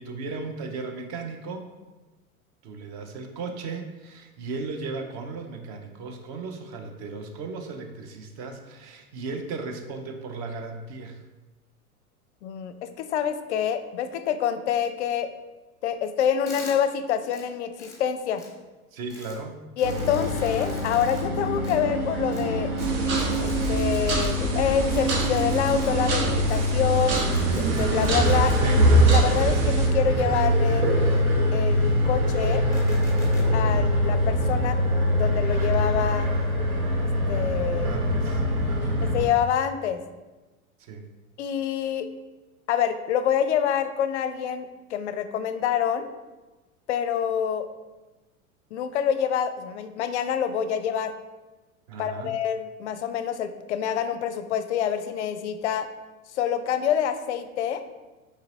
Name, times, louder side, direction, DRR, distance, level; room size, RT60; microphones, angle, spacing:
voice 1, 0.0-1.7 2.6-11.2 18.9-19.6 28.6-28.8 37.8-39.0 40.8-41.0 51.9-52.3, right 4 dB, 30° right, 5 dB, 0.5 m, -36 dB
voice 2, 12.4-15.3 15.8-18.4 19.8-22.7 23.4-27.2 27.6-28.8 29.1-30.9 31.5-32.6 33.5-34.8 35.1-36.3 37.0-38.0 39.1-40.0 41.4-42.1 42.7-46.1 46.9-47.7 48.7-51.1 52.0-55.9 56.3-57.8, left 8 dB, 55° left, 10 dB, 0.5 m, -26 dB
sound 1, 16.5-16.7 17.3-17.4 17.8-18.0 18.4-18.5 19.1-19.4 19.8-21.2 21.6-21.7 22.3-22.4 22.8-22.9 23.1-24.3 24.9-25.9 26.5-26.6 27.1-28.6 29.1-29.2 29.9-31.2 31.7-32.3 32.7-33.5, left 3 dB, 10° left, 0.8 m, -46 dB
sound 2, 19.8-39.2, equal, 80° right, 1.0 m, -24 dB
sound 3, 22.8-29.9, right 2 dB, 55° right, 0.9 m, -25 dB
4.9 x 3.8 x 2.7 m, 1.2 s
figure-of-eight pair, 85°, 43 cm